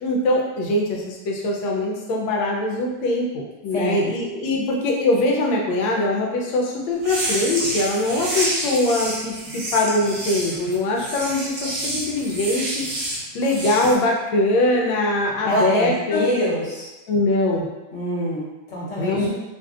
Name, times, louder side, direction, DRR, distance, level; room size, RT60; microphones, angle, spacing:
voice 1, 0.0-16.2 17.1-17.7 19.0-19.3, left 2 dB, 90° left, -1 dB, 1.4 m, -22 dB
voice 2, 3.7-4.1 15.4-16.9 17.9-19.4, equal, 55° left, -7 dB, 0.9 m, -25 dB
sound 1, 7.0-13.9, right 1 dB, 65° right, 0.8 m, -28 dB
3.2 x 2.6 x 2.3 m, 1.1 s
omnidirectional pair, 2.1 m